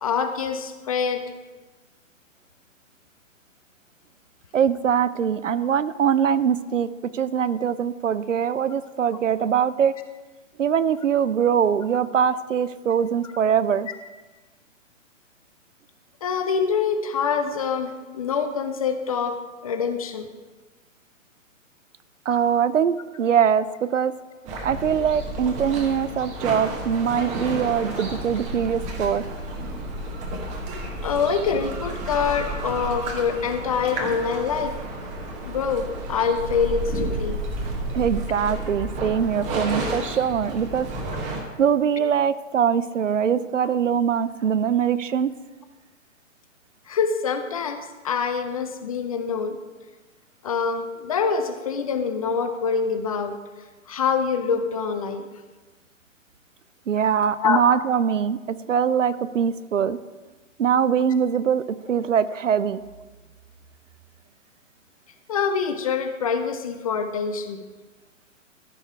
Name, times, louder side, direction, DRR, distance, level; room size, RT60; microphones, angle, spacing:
voice 1, 0.0-1.2 16.2-20.3 31.0-34.8 35.5-37.4 46.9-49.6 50.4-53.4 53.9-55.3 57.4-57.6 65.3-67.6, left 6 dB, 30° left, 8 dB, 0.5 m, -25 dB
voice 2, 4.5-9.9 10.6-13.9 22.3-24.1 24.6-29.2 37.9-40.9 41.6-45.3 56.9-60.0 60.6-62.8, right 8 dB, 65° right, 16 dB, 0.6 m, -22 dB
sound 1, 24.5-41.4, right 1 dB, 20° right, 1.2 m, -31 dB
14.0 x 5.4 x 4.6 m, 1.3 s
figure-of-eight pair, 125°, 40 cm